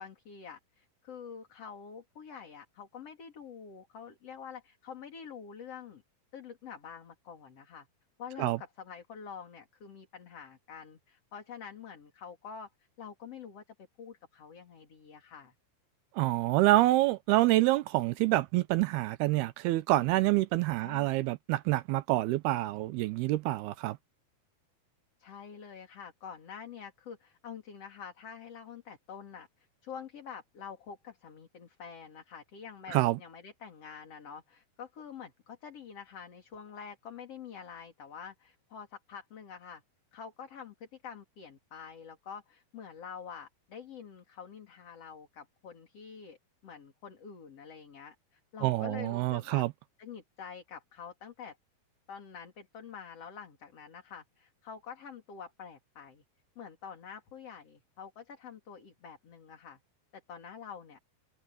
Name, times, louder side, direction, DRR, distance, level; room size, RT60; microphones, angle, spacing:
voice 1, 0.0-6.0 6.3-7.9 8.2-12.7 13.0-13.6 14.0-15.5 20.8-21.1 25.2-39.8 40.1-46.4 46.6-49.7 50.0-51.6 52.1-56.2 56.6-59.8 60.3-61.0, left 7 dB, 40° left, 3.7 m, -47 dB
voice 2, 16.1-24.0 32.9-33.2 48.6-49.7, right 17 dB, 80° right, 2.7 m, -27 dB
omnidirectional pair, 4.5 m